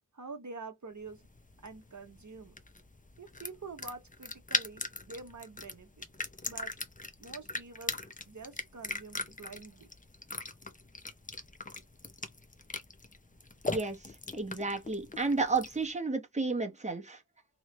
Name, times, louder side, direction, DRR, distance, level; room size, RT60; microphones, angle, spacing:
voice 1, 0.1-1.2 1.6-2.5 3.2-5.9 6.5-6.7 7.2-8.0 8.3-9.9, right 4 dB, 50° right, 0.8 m, -46 dB
sound 1, 1.1-15.9, left 3 dB, 20° left, 0.6 m, -40 dB
voice 2, 13.7-17.2, right 3 dB, 20° right, 0.9 m, -32 dB
3.1 x 2.8 x 3.1 m
wide cardioid pair, 50°, 38 cm